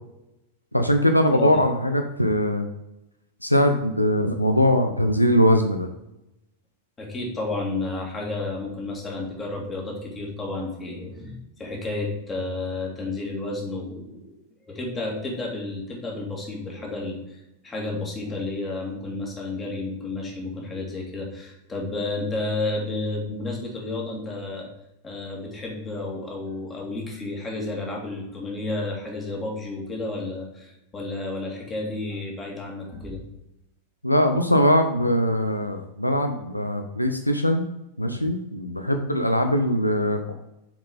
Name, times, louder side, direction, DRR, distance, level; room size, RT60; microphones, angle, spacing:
voice 1, 0.7-2.7 3.4-5.9 34.0-37.7 38.0-40.3, equal, 90° left, 6 dB, 0.6 m, -21 dB
voice 2, 1.3-1.6 7.0-14.4 14.7-24.7 25.0-33.3, left 2 dB, 20° left, -1 dB, 2.2 m, -31 dB
7.2 x 4.8 x 3.6 m, 0.90 s
figure-of-eight pair, 90°, 0 cm